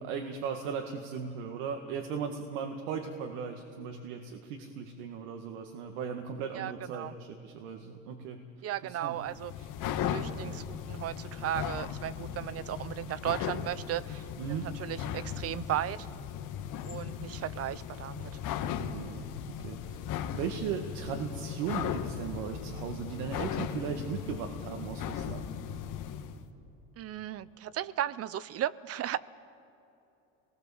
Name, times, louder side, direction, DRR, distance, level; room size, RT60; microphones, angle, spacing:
voice 1, 0.0-8.4 8.9-9.2 14.4-14.7 18.8-19.3 19.6-20.0 20.3-25.5, right 6 dB, 80° right, 4 dB, 2.1 m, -37 dB
voice 2, 6.5-7.1 8.6-9.5 9.9-16.1 16.8-18.3 27.0-29.2, right 12 dB, 40° right, 18 dB, 0.8 m, -35 dB
sound 1, 9.2-26.4, left 9 dB, 55° left, 1.8 m, -37 dB
26.0 x 20.5 x 7.2 m, 3.0 s
supercardioid pair, 110°, 36 cm